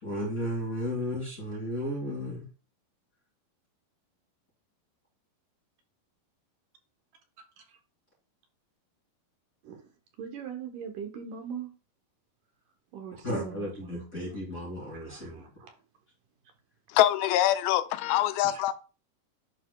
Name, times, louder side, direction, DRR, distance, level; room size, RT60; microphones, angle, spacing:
voice 1, 0.0-2.5 13.2-15.4, equal, 25° left, 2.6 m, -34 dB
voice 2, 10.2-11.7 12.9-14.1 14.9-15.7 18.4-18.7, right 7 dB, 70° right, 2.2 m, -41 dB
voice 3, 16.9-18.7, left 13 dB, 85° left, 2.4 m, -24 dB
11.0 x 4.0 x 2.3 m
omnidirectional pair, 4.3 m